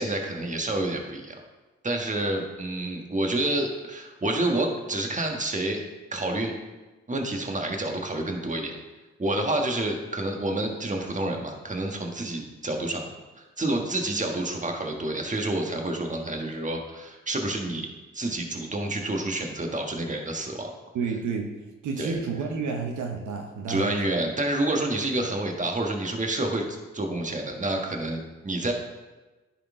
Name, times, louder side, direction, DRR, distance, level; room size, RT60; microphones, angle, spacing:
voice 1, 0.0-1.4 1.8-5.8 6.1-6.5 7.1-8.8 9.2-13.1 13.4-17.9 18.1-20.7 22.0-22.2 23.7-28.7, right 2 dB, 25° right, 2 dB, 1.5 m, -28 dB
voice 2, 20.9-21.5 21.8-23.9, right 5 dB, 80° right, 2 dB, 0.9 m, -30 dB
10.0 x 4.3 x 3.7 m, 1.2 s
supercardioid pair, 45°, 30 cm